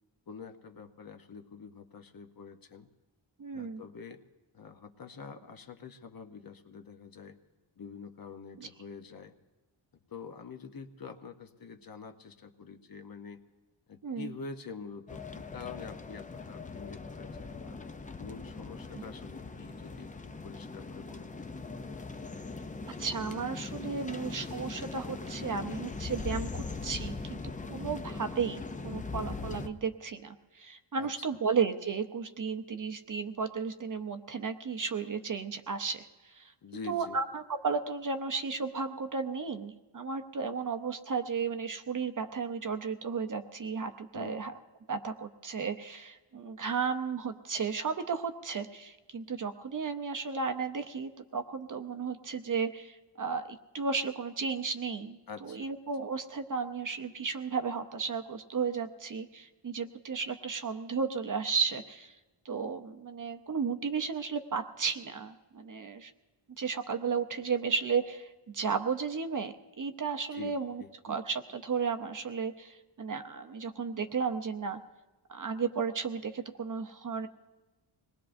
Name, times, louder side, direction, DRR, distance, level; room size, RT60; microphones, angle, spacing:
voice 1, 0.3-2.9 3.5-4.2 4.5-7.4 7.8-9.3 10.1-13.4 13.9-17.8 18.2-21.5 31.0-31.1 36.6-37.2 44.1-44.4 55.3-55.7 70.3-70.9, left 5 dB, 45° left, 8 dB, 0.8 m, -46 dB
voice 2, 3.4-3.8 8.6-8.7 14.0-14.3 18.9-19.0 23.0-27.4 27.7-36.5 36.9-44.5 44.9-62.2 62.4-66.1 66.6-74.8 75.3-77.3, right 5 dB, 40° right, 7 dB, 0.6 m, -34 dB
sound 1, 15.1-29.7, left 3 dB, 15° left, 0.4 m, -40 dB
25.5 x 19.5 x 2.6 m, 1.1 s
wide cardioid pair, 140°, 50 cm